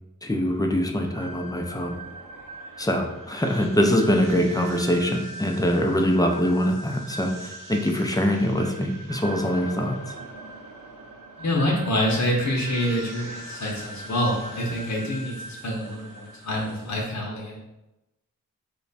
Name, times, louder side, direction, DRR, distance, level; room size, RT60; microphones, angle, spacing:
voice 1, 0.2-2.0 2.8-10.2, equal, 10° left, 2 dB, 0.5 m, -23 dB
sound 1, 1.1-17.0, right 1 dB, 75° right, 0.7 m, -41 dB
voice 2, 11.4-17.6, equal, 55° left, -3 dB, 0.7 m, -26 dB
3.0 x 2.2 x 4.0 m, 0.94 s
wide cardioid pair, 55°, 33 cm